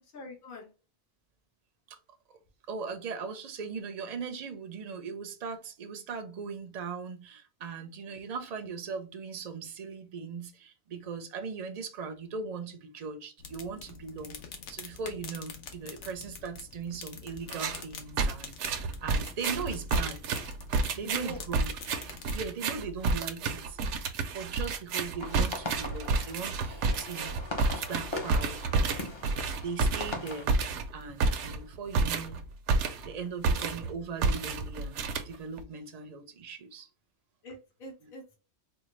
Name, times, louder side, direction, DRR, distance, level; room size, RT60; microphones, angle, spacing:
voice 1, 0.1-0.7 7.8-8.3 21.0-21.4 33.5-33.6 35.7-36.1 37.4-38.4, left 1 dB, 50° left, 1.2 m, -46 dB
voice 2, 2.7-14.4 14.7-20.4 20.9-21.7 22.3-23.8 24.3-27.3 27.7-29.1 29.6-30.5 30.9-32.4 33.0-36.9, right 5 dB, 45° right, 0.6 m, -39 dB
sound 1, 13.4-22.5, left 5 dB, 85° left, 1.1 m, -46 dB
sound 2, 17.5-17.8 18.2-33.2 33.4-33.9 34.2-35.6, right 4 dB, 85° right, 0.9 m, -30 dB
sound 3, 25.2-30.4, left 2 dB, 30° left, 0.7 m, -40 dB
4.4 x 2.2 x 3.1 m
omnidirectional pair, 1.2 m